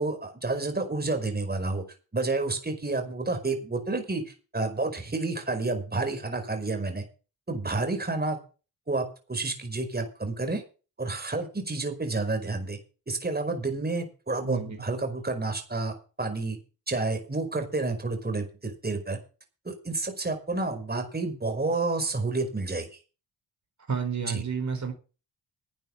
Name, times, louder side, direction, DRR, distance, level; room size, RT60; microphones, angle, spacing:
voice 1, 0.0-1.8 2.1-7.0 7.5-8.4 8.9-10.6 11.0-12.8 13.1-16.6 16.9-19.2 19.6-22.9 24.3-24.4, right 3 dB, 25° right, 5.1 m, -30 dB
voice 2, 14.4-14.8 23.9-24.9, right 6 dB, 45° right, 4.6 m, -30 dB
12.0 x 9.0 x 7.2 m
supercardioid pair, 60°, 41 cm